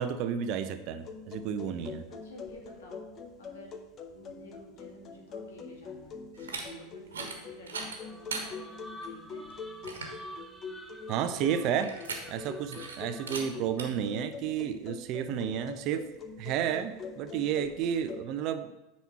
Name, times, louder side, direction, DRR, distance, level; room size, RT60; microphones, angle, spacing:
voice 1, 0.0-2.0 11.1-12.0 12.3-16.0 16.4-18.7, right 8 dB, 45° right, 10 dB, 0.6 m, -31 dB
sound 1, 1.0-18.2, left 4 dB, 35° left, 0.8 m, -44 dB
voice 2, 2.1-3.1 3.4-3.8 4.1-9.5, left 1 dB, 70° left, -1 dB, 2.4 m, -52 dB
sound 2, 6.3-6.6 7.1-7.4 7.7-8.5 9.0-9.1 9.5-9.6 9.8-10.2 11.8-12.5 12.7-13.0 13.3-13.4 13.8-13.9, right 4 dB, 70° right, 1.3 m, -38 dB
sound 3, 8.0-13.7, equal, 5° left, 0.9 m, -49 dB
9.1 x 4.4 x 5.7 m, 0.98 s
figure-of-eight pair, 80°, 0 cm